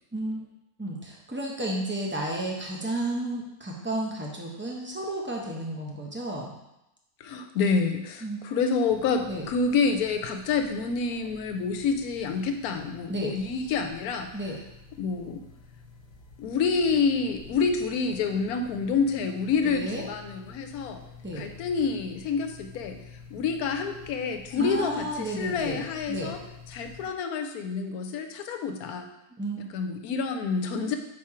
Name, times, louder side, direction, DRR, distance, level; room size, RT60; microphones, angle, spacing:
voice 1, 0.1-0.5 0.8-6.5 8.2-8.4 9.3-9.4 13.1-13.4 14.3-14.6 19.6-20.0 21.2-21.5 24.5-26.3 29.3-29.6, right 1 dB, 10° right, -2 dB, 0.5 m, -32 dB
voice 2, 7.2-14.3 15.0-15.4 16.4-21.0 21.4-23.0 23.3-26.4 26.7-29.1 29.7-31.0, left 5 dB, 80° left, 6 dB, 1.1 m, -28 dB
sound 1, 8.9-27.1, left 4 dB, 65° left, 1.2 m, -49 dB
4.5 x 4.3 x 4.8 m, 0.89 s
omnidirectional pair, 1.6 m